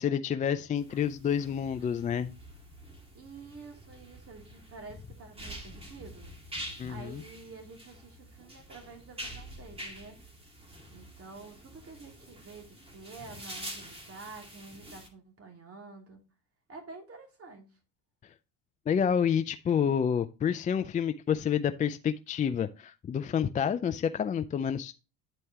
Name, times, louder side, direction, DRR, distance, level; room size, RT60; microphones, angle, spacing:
voice 1, 0.0-2.3 6.8-7.2 18.9-24.9, left 8 dB, 20° left, 0.3 m, -29 dB
sound 1, 0.8-15.1, equal, 15° right, 2.0 m, -46 dB
voice 2, 3.1-6.3 6.9-10.2 10.9-16.2 16.7-17.7, right 4 dB, 35° right, 2.7 m, -49 dB
10.0 x 4.5 x 2.8 m
supercardioid pair, 90°, 38 cm